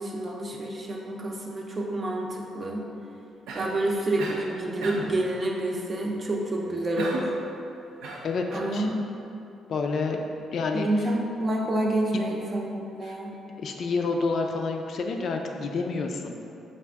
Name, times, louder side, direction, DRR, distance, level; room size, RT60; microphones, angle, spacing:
voice 1, 0.0-2.8 3.5-7.3 8.5-9.0 10.7-13.3, right 1 dB, 40° right, -1 dB, 0.6 m, -28 dB
Cough, 3.5-3.8 4.2-4.5 4.8-5.2 7.0-7.4 8.0-8.8, right 2 dB, 90° right, 0.4 m, -34 dB
voice 2, 8.2-8.9 9.7-10.2 10.5-10.9 13.1-13.2 13.5-16.3, left 4 dB, 60° left, 3 dB, 0.3 m, -28 dB
4.6 x 2.4 x 3.4 m, 2.7 s
cardioid pair, 90°, 0 cm